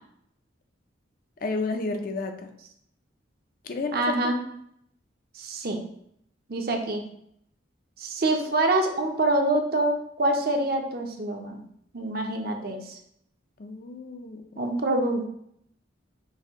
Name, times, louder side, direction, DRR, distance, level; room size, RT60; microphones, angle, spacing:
voice 1, 1.4-2.5 3.6-4.3 13.6-14.6, left 3 dB, 45° left, 5 dB, 0.4 m, -31 dB
voice 2, 3.9-4.4 5.3-5.8 6.5-7.0 8.0-11.6 11.9-13.0 14.6-15.3, right 2 dB, 50° right, 4 dB, 0.6 m, -26 dB
5.4 x 2.7 x 3.6 m, 0.71 s
head